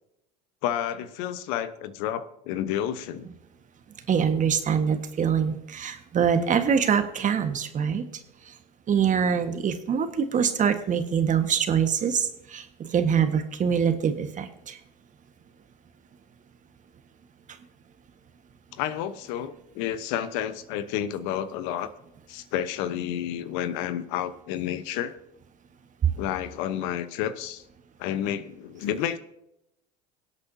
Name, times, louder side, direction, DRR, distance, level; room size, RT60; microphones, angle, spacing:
voice 1, 0.6-3.3 18.8-21.9 22.3-25.2 26.2-27.6 28.0-29.2, left 10 dB, 70° left, 13 dB, 1.0 m, -30 dB
voice 2, 4.1-8.0 8.5-8.6 8.9-14.8 26.0-26.1, right 7 dB, 40° right, 8 dB, 1.6 m, -24 dB
23.5 x 8.3 x 2.8 m, 0.81 s
hypercardioid pair, 80°, 21 cm